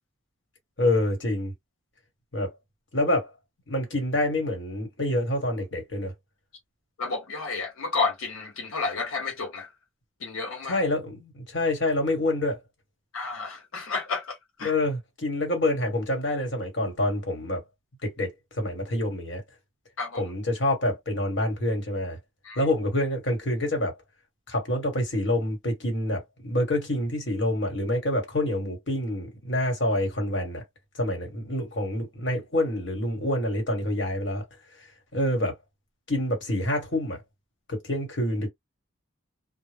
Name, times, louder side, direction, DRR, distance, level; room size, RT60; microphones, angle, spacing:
voice 1, 0.8-1.5 2.3-2.5 2.9-3.3 3.7-6.1 10.7-12.6 14.6-17.6 18.0-19.4 20.2-22.2 22.6-23.9 24.5-30.6 31.0-34.4 35.1-35.5 36.1-37.2 37.7-38.5, left 1 dB, 60° left, 1.3 m, -27 dB
voice 2, 7.0-9.7 10.2-10.8 13.1-14.7 20.0-20.2 22.4-22.6, left 4 dB, 90° left, 0.6 m, -31 dB
2.2 x 2.0 x 3.3 m
head